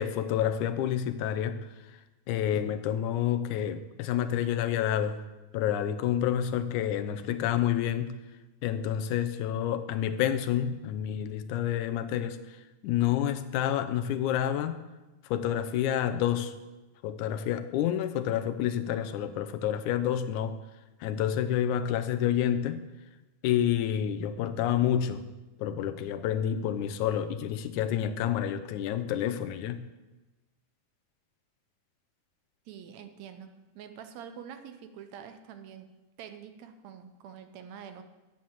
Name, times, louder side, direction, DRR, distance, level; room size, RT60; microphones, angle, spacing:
voice 1, 0.0-1.6 1.9-2.0 2.3-5.2 5.5-8.2 8.6-14.8 15.2-16.5 17.0-20.6 21.0-22.9 23.4-25.3 25.6-29.9, left 10 dB, 90° left, 12 dB, 2.2 m, -29 dB
voice 2, 32.7-35.9 36.2-38.0, right 8 dB, 75° right, 8 dB, 1.9 m, -46 dB
9.5 x 7.6 x 7.3 m, 1.1 s
omnidirectional pair, 3.4 m